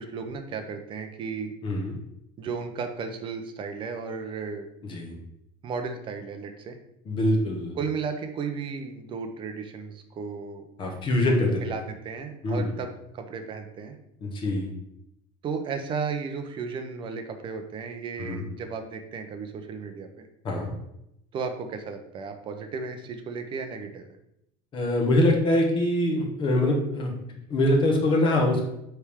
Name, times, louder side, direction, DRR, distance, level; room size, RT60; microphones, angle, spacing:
voice 1, 0.0-1.5 2.4-4.7 5.6-6.8 7.8-10.7 11.5-13.9 15.4-20.3 21.3-24.1, right 5 dB, 25° right, 6 dB, 0.6 m, -34 dB
voice 2, 1.6-1.9 4.9-5.2 7.1-7.8 10.8-11.6 12.4-12.7 14.2-14.7 18.2-18.4 20.4-20.7 24.7-27.1 27.5-28.6, left 1 dB, 25° left, 1 dB, 1.1 m, -23 dB
9.2 x 3.4 x 3.5 m, 0.80 s
cardioid pair, 175°, 20 cm